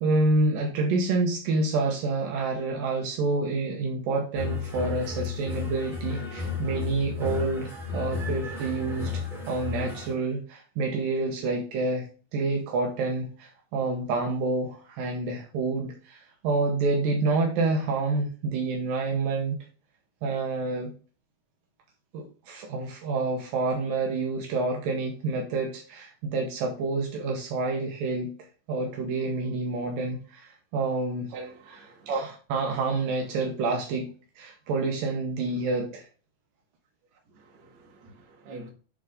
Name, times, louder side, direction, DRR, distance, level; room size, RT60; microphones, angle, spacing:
voice 1, 0.0-12.1 12.3-19.6 20.2-20.9 22.1-28.3 28.7-31.3 32.5-34.1 34.4-36.0, right 3 dB, 75° right, 2.7 m, -28 dB
sound 1, 4.3-10.1, left 5 dB, ahead, 1.8 m, -33 dB
voice 2, 31.3-32.2 37.3-38.7, right 4 dB, 55° right, 2.7 m, -38 dB
10.0 x 3.9 x 3.6 m
omnidirectional pair, 4.2 m